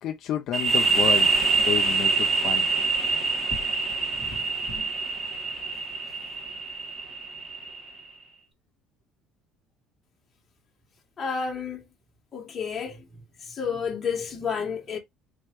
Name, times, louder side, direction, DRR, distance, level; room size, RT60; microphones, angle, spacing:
voice 1, 0.0-2.7, left 10 dB, 50° left, 0.5 m, -31 dB
sound 1, 0.5-8.0, right 4 dB, 20° right, 1.8 m, -25 dB
voice 2, 3.8-4.9 11.2-11.8 12.3-13.1 13.5-15.0, left 6 dB, 25° left, 1.7 m, -32 dB
4.4 x 3.0 x 3.0 m
cardioid pair, 160°, 0 cm